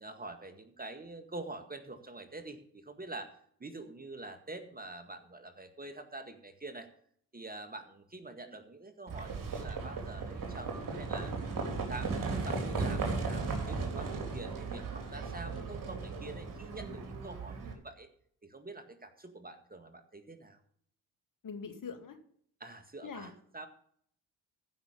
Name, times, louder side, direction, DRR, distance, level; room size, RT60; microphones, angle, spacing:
voice 1, 0.0-3.3 3.6-6.9 7.3-11.3 11.7-18.1 18.4-20.6 22.6-23.7, right 2 dB, 20° right, 7 dB, 2.0 m, -46 dB
Livestock farm animals working animals, 9.1-17.7, right 4 dB, 45° right, 3.6 m, -36 dB
voice 2, 21.4-22.2 23.0-23.3, left 5 dB, 45° left, 5 dB, 2.5 m, -42 dB
15.0 x 6.1 x 6.8 m, 0.63 s
hypercardioid pair, 55°, 44 cm